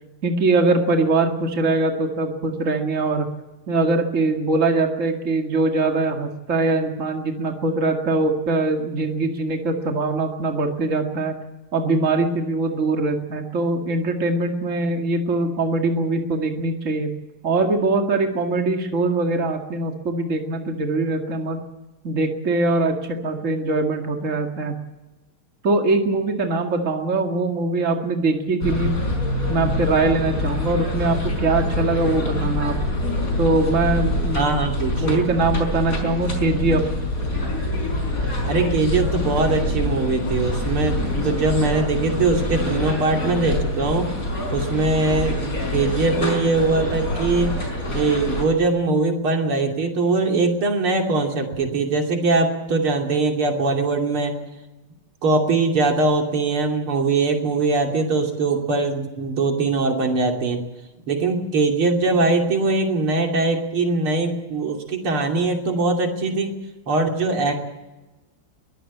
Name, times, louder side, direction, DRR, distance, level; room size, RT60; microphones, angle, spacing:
voice 1, 0.2-3.3 3.7-11.3 11.7-17.1 17.4-21.6 22.0-24.7 25.6-28.9 29.5-32.8 33.4-34.5 35.0-36.8, right 3 dB, 35° right, 3 dB, 2.4 m, -22 dB
sound 1, 28.6-48.4, left 1 dB, 40° left, 5.5 m, -25 dB
voice 2, 34.4-35.3 38.5-41.0 41.2-44.1 44.5-47.5 47.9-54.3 55.2-60.6 61.1-66.6 66.9-67.5, right 3 dB, 85° right, 2 dB, 3.7 m, -21 dB
22.0 x 15.0 x 8.5 m, 1.1 s
omnidirectional pair, 2.3 m